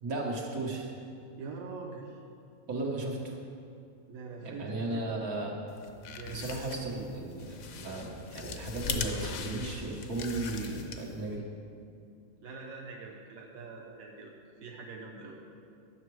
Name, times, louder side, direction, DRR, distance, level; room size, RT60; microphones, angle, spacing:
voice 1, 0.0-0.9 2.7-3.4 4.4-5.5 6.3-11.4, right 2 dB, 90° right, -1 dB, 1.8 m, -35 dB
voice 2, 1.4-2.2 4.1-5.1 6.1-6.5 12.4-15.4, right 4 dB, 75° right, -1 dB, 1.2 m, -44 dB
sound 1, 5.8-11.3, left 5 dB, 70° left, 1.1 m, -40 dB
11.0 x 6.8 x 4.7 m, 2.4 s
omnidirectional pair, 1.5 m